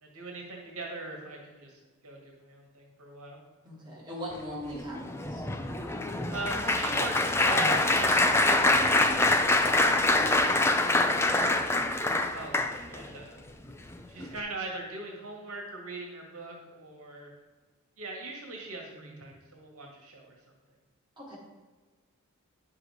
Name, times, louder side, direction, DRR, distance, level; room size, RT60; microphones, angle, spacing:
voice 1, 0.0-3.4 6.3-10.6 11.3-13.4 14.1-17.3 18.0-20.4, right 2 dB, 80° right, 0 dB, 1.8 m, -41 dB
voice 2, 3.6-5.4 10.9-11.3 19.0-19.1 21.2-21.4, equal, 20° right, -6 dB, 2.8 m, -40 dB
Applause, 4.7-13.1 13.7-13.9 14.2-14.4, left 2 dB, 10° left, 0.5 m, -25 dB
9.8 x 6.4 x 4.8 m, 1.3 s
head